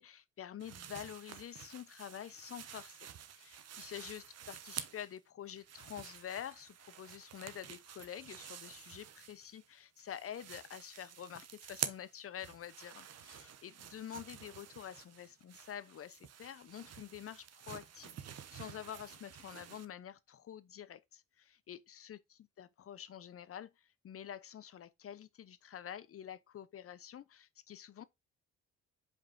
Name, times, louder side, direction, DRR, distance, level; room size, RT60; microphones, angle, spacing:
voice 1, 0.0-28.0, left 10 dB, 50° left, 0.8 m, -48 dB
sound 1, 0.6-5.2 5.5-9.7 10.0-19.9, right 9 dB, 55° right, 1.0 m, -49 dB
5.3 x 4.9 x 4.4 m
cardioid pair, 90°, 30 cm